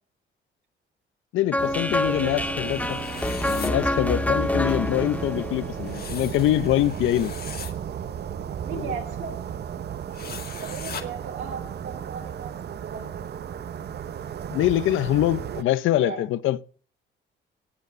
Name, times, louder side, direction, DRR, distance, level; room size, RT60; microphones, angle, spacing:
voice 1, 1.3-3.0 3.5-7.3 8.7-8.9 14.5-16.6, left 14 dB, 85° left, 0.7 m, -24 dB
sound 1, 1.5-6.5, left 1 dB, 5° left, 0.8 m, -27 dB
sound 2, 1.6-15.6, right 8 dB, 55° right, 0.9 m, -35 dB
voice 2, 2.1-2.8 8.6-9.3 10.6-13.3 15.5-15.6 15.9-16.3, right 6 dB, 75° right, 3.5 m, -37 dB
sound 3, 2.6-3.7 5.9-7.7 10.1-11.0, left 7 dB, 50° left, 2.0 m, -39 dB
18.0 x 6.8 x 6.8 m
cardioid pair, 90°, 20 cm